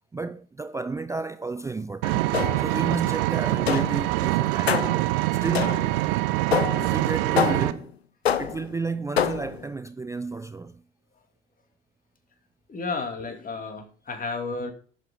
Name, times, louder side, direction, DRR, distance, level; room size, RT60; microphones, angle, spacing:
voice 1, 0.1-4.8 5.3-5.8 6.8-8.0 8.4-10.8, right 4 dB, 10° right, 0.4 m, -32 dB
Vehicle, 2.0-7.7, right 19 dB, 65° right, 0.7 m, -24 dB
sound 1, 2.3-2.8 3.7-4.1 4.7-5.1 5.5-6.0 6.5-6.9 7.4-7.8 8.3-8.7 9.2-9.6, left 8 dB, 85° left, 0.6 m, -26 dB
voice 2, 12.7-14.7, left 4 dB, 25° left, 2.6 m, -32 dB
10.5 x 7.6 x 3.7 m
figure-of-eight pair, 60°, 30 cm